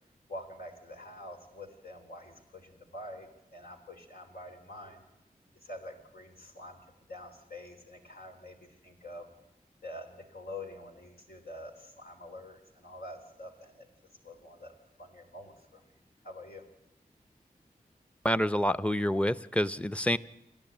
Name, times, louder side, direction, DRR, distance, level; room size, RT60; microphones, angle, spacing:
voice 1, 0.3-5.0 5.6-6.8 7.1-9.3 9.8-13.9 14.2-15.9 16.2-16.7, left 1 dB, 80° left, 3 dB, 3.5 m, -46 dB
voice 2, 18.2-20.2, equal, 10° left, 14 dB, 0.6 m, -27 dB
28.0 x 11.0 x 8.9 m, 0.89 s
cardioid pair, 50°, 15 cm